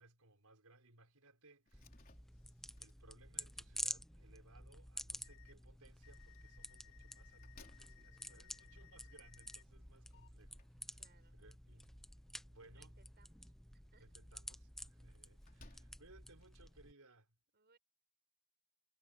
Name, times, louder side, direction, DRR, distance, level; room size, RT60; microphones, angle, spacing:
voice 1, 0.0-2.0 2.8-11.0 11.4-11.9 12.5-12.9 14.0-17.4, right 2 dB, 90° right, 5.2 m, -65 dB
Slam, 1.7-16.7, left 2 dB, 40° left, 4.2 m, -69 dB
sound 1, 1.7-16.9, left 1 dB, ahead, 0.7 m, -51 dB
sound 2, 5.2-5.5 6.0-9.6 10.1-10.3, left 17 dB, 55° left, 1.7 m, -65 dB
voice 2, 8.2-8.9 10.9-11.4 12.7-14.1 15.6-15.8 17.5-17.8, right 4 dB, 50° right, 5.5 m, -72 dB
head